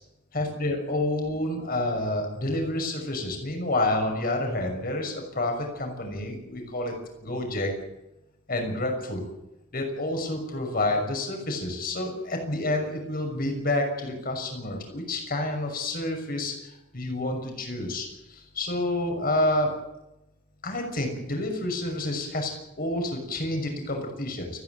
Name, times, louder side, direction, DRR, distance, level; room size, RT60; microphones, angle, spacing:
voice 1, 0.3-6.9 7.2-7.7 8.5-9.2 9.7-19.7 20.6-22.5 22.8-24.5, left 1 dB, 50° left, 3 dB, 6.2 m, -29 dB
29.0 x 10.5 x 9.4 m, 0.91 s
head